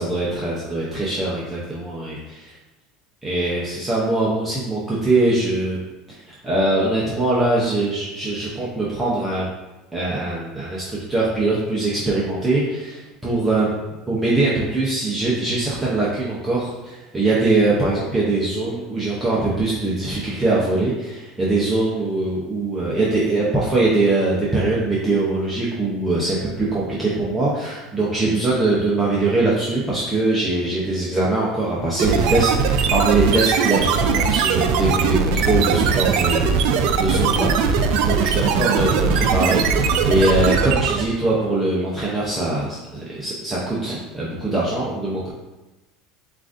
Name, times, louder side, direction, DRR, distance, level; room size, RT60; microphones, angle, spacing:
voice 1, 0.0-2.2 3.2-5.8 6.1-9.5 9.9-13.7 14.1-45.3, right 2 dB, 10° right, -7 dB, 0.7 m, -22 dB
sound 1, 32.0-41.2, right 5 dB, 65° right, 0.4 m, -20 dB
7.3 x 2.5 x 2.5 m, 1.1 s
supercardioid pair, 145°, 0 cm